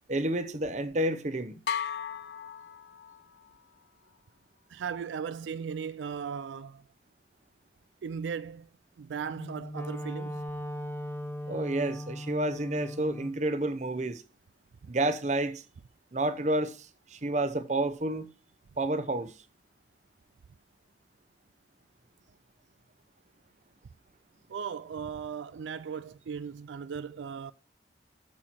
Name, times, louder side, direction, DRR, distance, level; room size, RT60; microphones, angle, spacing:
voice 1, 0.1-1.6 11.5-14.2 14.9-15.6 16.1-18.3 18.8-19.3, right 1 dB, 40° right, 0.8 m, -30 dB
sound 1, 1.7-3.5, left 7 dB, 65° left, 0.4 m, -36 dB
voice 2, 4.7-6.9 8.0-8.7 9.0-10.4 14.8-14.9 24.5-27.5, right 6 dB, 80° right, 0.4 m, -37 dB
Wind instrument woodwind instrument, 9.3-13.4, left 1 dB, 10° left, 0.9 m, -38 dB
8.5 x 7.6 x 4.5 m
head